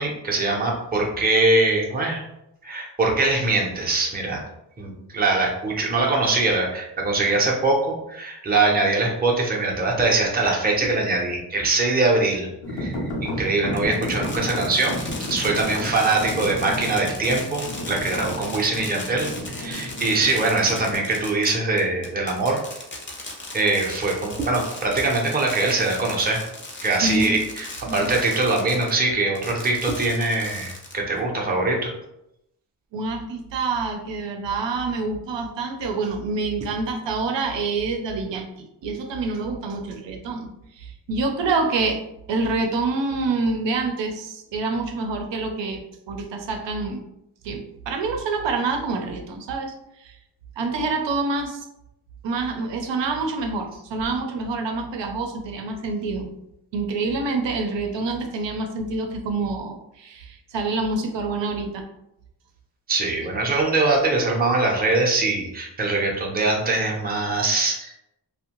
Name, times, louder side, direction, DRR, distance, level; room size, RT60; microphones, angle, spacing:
voice 1, 0.0-2.2 2.6-4.4 4.8-12.5 12.7-22.6 23.5-26.4 26.8-31.9 62.9-67.9, right 3 dB, 20° right, -1 dB, 0.5 m, -22 dB
sound 1, 12.6-21.0, left 1 dB, 75° left, 0.8 m, -32 dB
Fireworks, 13.7-28.9 29.4-31.2, left 2 dB, 30° left, 0.6 m, -37 dB
voice 2, 27.0-27.4 27.9-28.1 32.9-38.5 38.8-40.5 40.7-42.0 42.3-47.0 47.4-50.2 50.6-51.6 52.2-56.3 56.7-61.8, right 3 dB, 85° right, 4 dB, 0.6 m, -27 dB
2.6 x 2.1 x 2.8 m, 0.83 s
wide cardioid pair, 100°, 43 cm